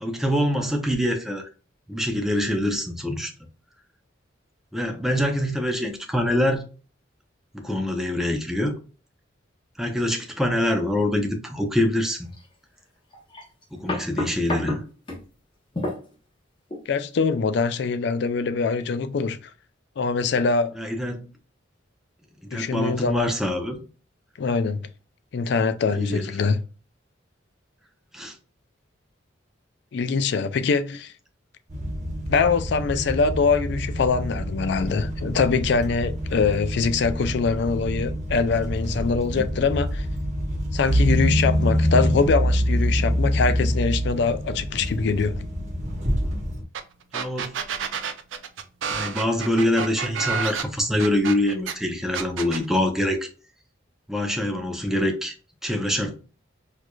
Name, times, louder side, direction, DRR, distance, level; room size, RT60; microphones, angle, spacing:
voice 1, 0.0-1.5 1.9-3.3 4.7-6.6 7.5-8.7 9.8-12.3 13.7-14.8 20.8-21.3 22.4-23.8 26.0-26.3 28.1-28.4 47.1-47.8 48.9-53.3 54.1-55.4 55.6-56.1, left 1 dB, ahead, 0.5 m, -25 dB
sound 1, 12.3-12.4 13.1-15.2 15.7-16.1 16.7-16.8, left 1 dB, 25° left, 0.9 m, -30 dB
voice 2, 16.9-19.4 20.0-20.8 22.5-23.3 24.4-24.9 25.3-26.6 29.9-31.1 32.3-40.1 40.7-45.4, left 4 dB, 60° left, 0.4 m, -23 dB
sound 2, 31.7-46.6, equal, 35° right, 1.0 m, -26 dB
sound 3, 46.7-46.8 47.1-51.7 52.1-52.6, right 6 dB, 80° right, 0.4 m, -29 dB
4.5 x 2.5 x 2.3 m
head